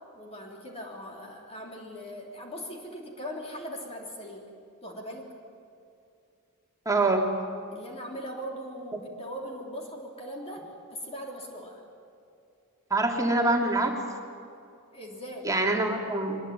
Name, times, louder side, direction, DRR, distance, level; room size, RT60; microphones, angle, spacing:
voice 1, 0.1-4.5 4.8-5.3 7.7-11.8 14.9-15.5, equal, 30° left, 0 dB, 3.4 m, -40 dB
voice 2, 6.9-7.3 12.9-14.0 15.4-16.4, right 2 dB, 15° right, 1 dB, 2.7 m, -25 dB
23.5 x 21.5 x 9.5 m, 2.6 s
head